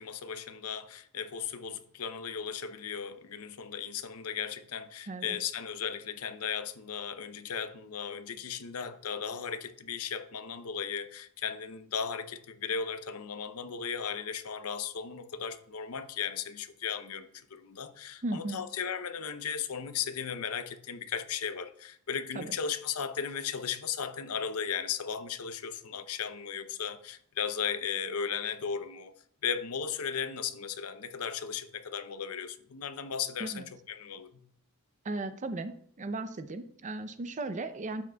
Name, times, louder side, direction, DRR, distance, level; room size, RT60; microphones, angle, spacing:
voice 1, 0.0-29.1 29.4-34.5, left 7 dB, 75° left, 0.7 m, -36 dB
voice 2, 18.2-18.6 22.3-22.5 33.4-33.7 35.0-35.7 36.0-38.0, right 2 dB, 35° right, 0.5 m, -36 dB
12.0 x 7.5 x 2.3 m
head